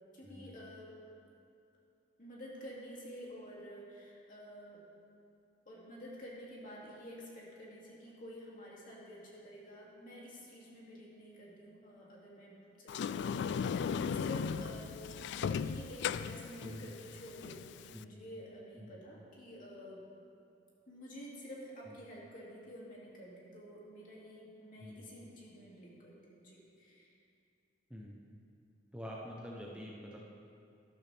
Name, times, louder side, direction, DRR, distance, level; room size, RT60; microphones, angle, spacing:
voice 1, 0.1-0.9 2.2-4.8 5.7-15.0 15.3-20.0 20.9-27.1, equal, 45° left, -5 dB, 2.8 m, -50 dB
Sliding door, 12.9-18.0, left 6 dB, 65° left, 0.3 m, -37 dB
voice 2, 27.9-28.2 28.9-30.2, equal, 5° right, -3 dB, 0.9 m, -46 dB
12.5 x 12.5 x 3.5 m, 2.6 s
head